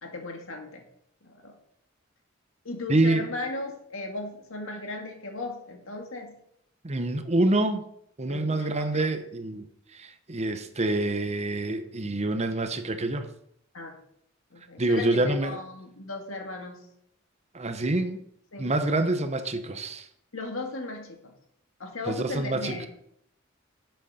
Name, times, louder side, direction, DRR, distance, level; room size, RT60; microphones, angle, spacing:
voice 1, 0.0-0.9 1.2-1.6 2.6-6.3 8.3-9.1 13.7-14.0 14.5-16.8 18.5-18.8 20.3-21.3 21.8-22.9, left 2 dB, 75° left, 2.0 m, -36 dB
voice 2, 2.9-3.2 6.8-7.8 8.2-9.7 9.9-13.3 14.8-15.6 17.5-18.2 18.6-20.1 22.1-22.8, right 2 dB, 30° right, 0.9 m, -26 dB
12.0 x 7.9 x 4.2 m
head